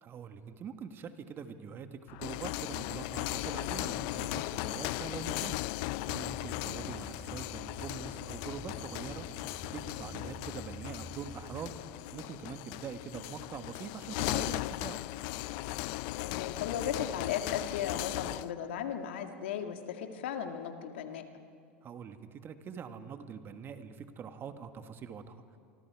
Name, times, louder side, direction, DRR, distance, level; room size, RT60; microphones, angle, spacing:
voice 1, 0.0-5.6 6.1-9.3 9.7-11.8 12.1-15.1 21.8-25.4, right 7 dB, 35° right, 8 dB, 1.6 m, -44 dB
sound 1, 2.1-18.5, left 19 dB, 60° left, 0.4 m, -37 dB
sound 2, 6.2-11.8, right 1 dB, 5° right, 3.3 m, -49 dB
voice 2, 16.2-21.2, left 8 dB, 75° left, 6 dB, 1.9 m, -36 dB
27.0 x 24.5 x 4.8 m, 2.4 s
hypercardioid pair, 95°, 6 cm